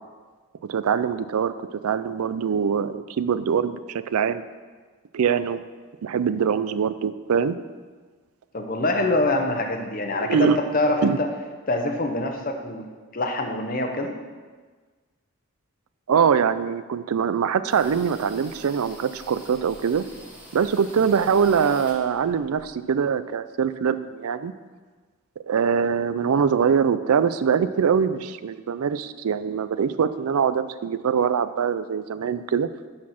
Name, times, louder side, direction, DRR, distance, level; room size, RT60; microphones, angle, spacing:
voice 1, 0.7-4.4 5.1-5.6 6.0-7.6 10.3-10.6 11.0-11.2 16.1-20.0 20.5-24.5 25.5-32.7, right 7 dB, 85° right, 14 dB, 0.4 m, -23 dB
voice 2, 8.5-11.1 11.7-12.8 13.1-14.1, left 2 dB, 40° left, 4 dB, 0.9 m, -25 dB
sound 1, 17.7-23.1, right 1 dB, 5° right, 1.6 m, -46 dB
11.0 x 4.3 x 5.8 m, 1.4 s
head